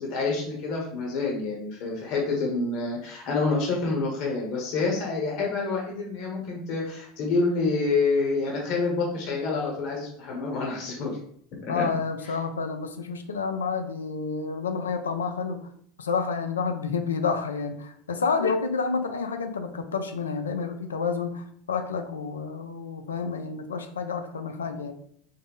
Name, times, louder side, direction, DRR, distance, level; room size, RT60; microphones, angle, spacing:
voice 1, 0.0-11.2 11.6-11.8, left 3 dB, 60° left, -2 dB, 1.0 m, -27 dB
voice 2, 11.7-15.7 16.0-24.9, left 5 dB, 90° left, 6 dB, 0.4 m, -29 dB
3.9 x 2.0 x 3.6 m, 0.64 s
hypercardioid pair, 85°, 0 cm